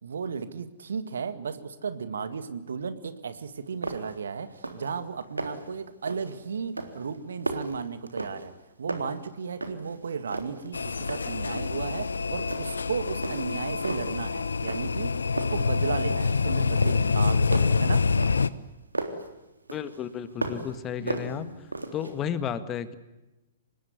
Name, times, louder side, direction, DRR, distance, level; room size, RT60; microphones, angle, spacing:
voice 1, 0.0-8.5 8.8-18.0 20.9-21.6, right 6 dB, 65° right, 11 dB, 2.0 m, -35 dB
sound 1, 3.4-3.5 3.8-4.2 4.5-4.9 5.2-5.7 6.1-6.4 6.8-8.6 8.9-10.0 10.3-11.4 11.8-12.1 12.5-12.9 13.2-14.2 14.7-15.1 15.4-16.4 16.8-19.3 19.7-20.8 21.1-22.1, right 2 dB, 85° right, 3.5 m, -35 dB
sound 2, 10.7-18.5, left 4 dB, 75° left, 1.0 m, -26 dB
voice 2, 19.7-21.5 21.9-23.0, left 8 dB, 25° left, 12 dB, 1.7 m, -32 dB
25.5 x 21.0 x 9.6 m, 1.0 s
figure-of-eight pair, 115°, 0 cm